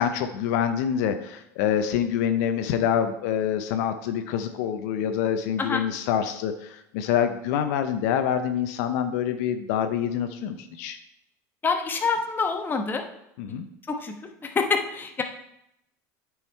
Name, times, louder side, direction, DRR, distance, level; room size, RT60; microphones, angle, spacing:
voice 1, 0.0-11.0 13.4-13.6, left 9 dB, 70° left, 8 dB, 0.6 m, -26 dB
voice 2, 11.6-13.0 13.9-14.1 14.4-15.2, left 4 dB, 20° left, 4 dB, 1.1 m, -26 dB
8.9 x 4.7 x 4.4 m, 0.81 s
supercardioid pair, 105°, 9 cm